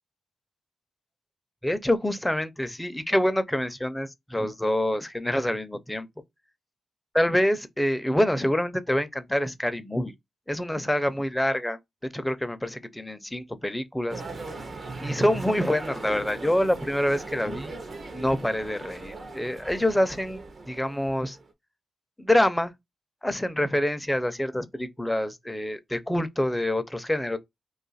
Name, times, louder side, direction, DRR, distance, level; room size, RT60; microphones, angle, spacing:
voice 1, 1.6-6.1 7.1-10.1 10.5-11.8 12.1-14.2 15.0-17.7 18.1-21.4 22.2-22.7 23.2-27.4, left 1 dB, 10° left, 0.6 m, -26 dB
sound 1, 14.1-21.5, right 3 dB, 60° right, 0.7 m, -38 dB
2.5 x 2.4 x 4.0 m
supercardioid pair, 45°, 0 cm